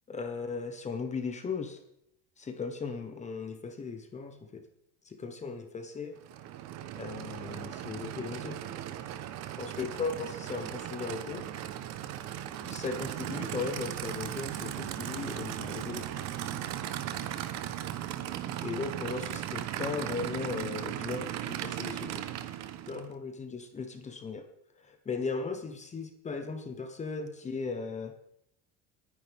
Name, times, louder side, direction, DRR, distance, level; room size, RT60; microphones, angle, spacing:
voice 1, 0.1-1.8 2.4-4.6 5.0-6.2 7.0-8.6 9.6-11.4 12.6-16.1 18.6-22.3 22.9-24.4 24.8-28.1, left 4 dB, 20° left, 6 dB, 1.2 m, -37 dB
Aircraft / Idling, 6.2-23.1, right 11 dB, 55° right, 1.1 m, -37 dB
29.5 x 9.9 x 3.6 m, 0.74 s
cardioid pair, 140°, 33 cm